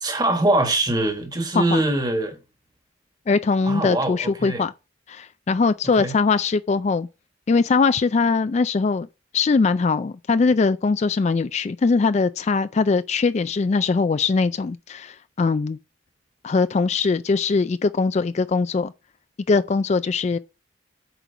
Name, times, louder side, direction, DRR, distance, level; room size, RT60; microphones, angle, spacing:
voice 1, 0.0-2.4 3.7-4.6 6.0-6.1, right 2 dB, 20° right, 1.5 m, -23 dB
voice 2, 3.3-4.7 5.1-7.1 7.5-9.1 9.3-15.8 16.4-18.9 19.5-20.4, left 4 dB, 35° left, 0.3 m, -21 dB
7.9 x 4.5 x 5.6 m
head